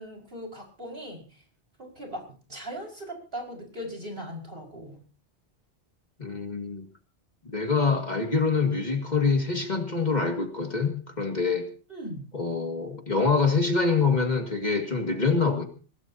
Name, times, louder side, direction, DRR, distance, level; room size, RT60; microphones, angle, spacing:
voice 1, 0.0-1.4 1.8-5.0 11.9-12.3, equal, 50° right, 0 dB, 5.6 m, -39 dB
voice 2, 6.2-6.9 7.4-11.7 12.3-15.7, left 4 dB, 40° left, 4 dB, 2.2 m, -25 dB
24.0 x 18.0 x 2.8 m, 0.36 s
omnidirectional pair, 1.2 m